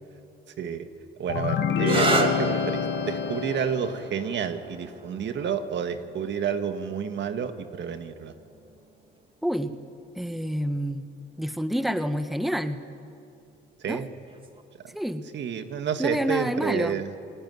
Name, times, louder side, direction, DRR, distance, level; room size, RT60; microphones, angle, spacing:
voice 1, 0.6-0.9 1.2-8.3 13.8-14.1 15.3-17.1, right 7 dB, 65° right, 7 dB, 1.8 m, -30 dB
sound 1, 1.3-4.1, left 8 dB, 70° left, 1.8 m, -27 dB
sound 2, 1.8-9.2 10.2-10.7 14.3-14.6, right 2 dB, 25° right, 2.4 m, -33 dB
voice 2, 10.1-11.0 11.4-12.8 13.9-14.0 14.9-15.2 16.0-17.0, equal, ahead, 9 dB, 1.4 m, -28 dB
28.5 x 21.0 x 9.6 m, 2.5 s
cardioid pair, 90°, 20 cm